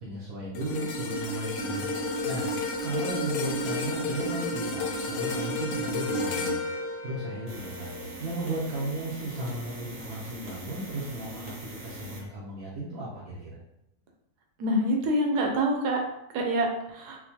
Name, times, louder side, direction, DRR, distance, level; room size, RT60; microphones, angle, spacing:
voice 1, 0.0-6.6 7.0-13.5, right 1 dB, 65° right, -7 dB, 1.2 m, -35 dB
sound 1, 0.5-8.9 9.3-9.5, left 1 dB, 70° left, 0.9 m, -32 dB
sound 2, 7.5-12.3, right 2 dB, 30° right, 0.8 m, -43 dB
voice 2, 14.6-16.0 16.3-17.2, right 1 dB, 90° right, 1 dB, 1.2 m, -26 dB
4.5 x 2.2 x 2.8 m, 0.84 s
omnidirectional pair, 1.7 m